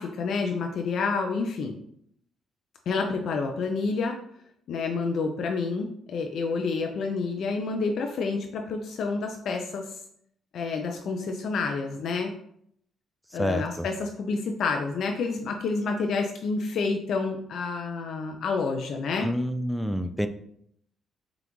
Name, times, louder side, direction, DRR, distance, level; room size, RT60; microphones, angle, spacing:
voice 1, 0.0-1.8 2.9-4.2 4.7-9.8 10.5-12.3 13.3-19.3, left 4 dB, 70° left, 3 dB, 0.4 m, -29 dB
voice 2, 13.4-13.9 19.2-20.3, equal, ahead, 9 dB, 0.3 m, -28 dB
5.1 x 2.4 x 3.0 m, 0.69 s
cardioid pair, 90°, 0 cm